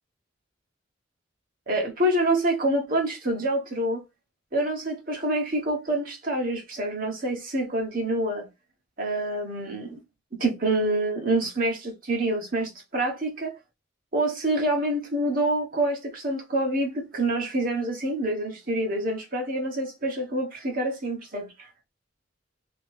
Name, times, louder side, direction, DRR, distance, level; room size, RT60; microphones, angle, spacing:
voice 1, 1.7-4.0 4.5-8.5 9.0-10.0 10.3-13.6 14.1-21.5, right 1 dB, 50° right, 1.3 m, -27 dB
3.8 x 3.0 x 3.4 m
head